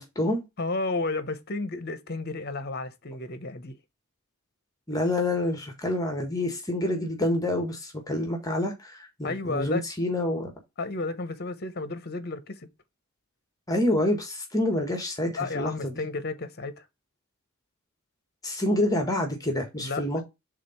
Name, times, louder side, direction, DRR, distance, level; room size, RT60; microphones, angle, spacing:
voice 1, 0.0-0.4 4.9-10.5 13.7-15.9 18.4-20.2, left 1 dB, 15° left, 1.4 m, -27 dB
voice 2, 0.6-3.8 9.2-9.8 10.8-12.7 15.4-16.9 19.8-20.0, left 3 dB, 45° left, 0.9 m, -32 dB
5.0 x 3.8 x 5.6 m
head